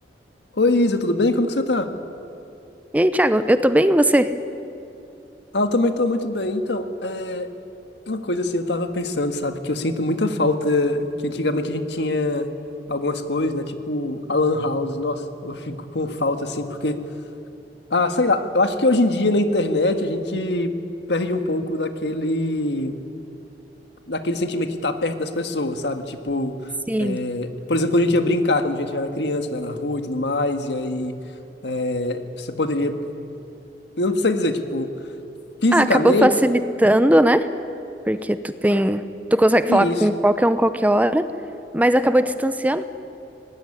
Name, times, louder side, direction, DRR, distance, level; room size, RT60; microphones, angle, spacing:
voice 1, 0.6-1.9 5.5-7.5 8.1-12.5 12.9-17.0 17.9-20.7 21.1-23.0 24.1-26.5 27.0-31.2 31.6-33.0 34.0-34.9 35.6-36.3 39.7-39.9, left 2 dB, 70° left, 7 dB, 1.7 m, -23 dB
voice 2, 2.9-4.3 26.9-27.2 35.7-37.5 38.1-39.1 39.3-41.3 41.7-42.8, right 1 dB, 10° right, 12 dB, 0.7 m, -18 dB
24.0 x 19.0 x 9.9 m, 2.7 s
head